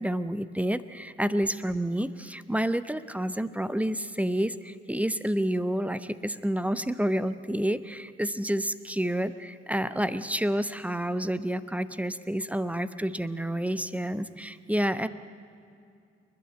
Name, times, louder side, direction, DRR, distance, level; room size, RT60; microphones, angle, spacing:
voice 1, 0.0-15.1, right 1 dB, 5° right, 13 dB, 0.8 m, -29 dB
28.5 x 12.0 x 9.2 m, 2.4 s
figure-of-eight pair, 40°, 34 cm